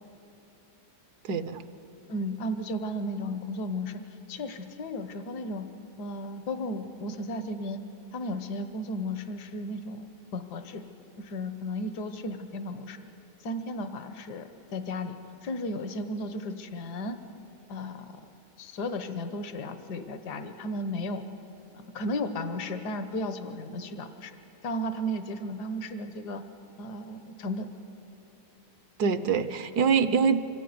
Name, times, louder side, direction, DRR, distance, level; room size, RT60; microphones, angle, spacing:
voice 1, 1.3-1.6 29.0-30.4, right 6 dB, 70° right, 11 dB, 1.5 m, -24 dB
voice 2, 2.1-4.0 4.3-5.6 6.0-7.8 8.1-10.1 10.3-10.8 11.2-13.0 13.4-15.2 15.4-17.2 17.7-18.1 18.6-21.2 21.8-24.3 24.6-26.4 26.8-27.7 30.0-30.2, left 1 dB, 75° left, 9 dB, 1.7 m, -34 dB
25.0 x 15.5 x 9.6 m, 3.0 s
omnidirectional pair, 1.8 m